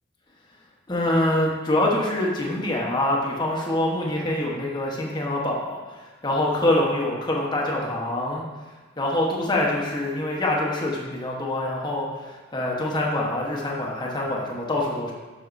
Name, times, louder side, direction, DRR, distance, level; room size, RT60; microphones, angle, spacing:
voice 1, 0.9-8.4 9.0-15.1, left 1 dB, 20° left, -2 dB, 1.0 m, -25 dB
7.6 x 6.2 x 2.6 m, 1.3 s
head